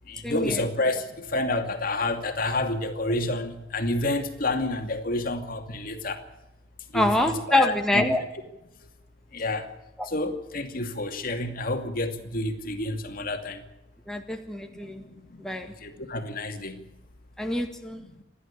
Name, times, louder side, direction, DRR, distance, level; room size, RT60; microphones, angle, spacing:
voice 1, 0.1-6.2 6.9-8.1 9.3-9.7 10.0-13.6 14.6-16.9 18.0-18.2, left 2 dB, 50° left, 2.5 m, -29 dB
voice 2, 6.9-8.2 10.0-10.1 14.1-15.0 15.4-15.7 17.4-18.0, left 1 dB, 5° left, 1.7 m, -25 dB
28.5 x 12.0 x 8.5 m
head